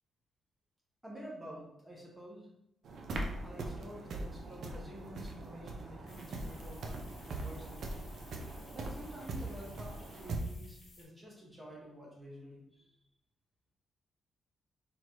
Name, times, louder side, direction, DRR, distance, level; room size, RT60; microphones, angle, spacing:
voice 1, 1.0-2.5 3.4-8.1 8.7-13.0, equal, 5° right, -4 dB, 1.0 m, -50 dB
sound 1, 2.8-10.4, right 2 dB, 55° right, 0.5 m, -41 dB
sound 2, 6.1-11.0, left 2 dB, 55° left, 1.5 m, -58 dB
4.0 x 3.1 x 3.0 m, 0.80 s
wide cardioid pair, 180°, 0 cm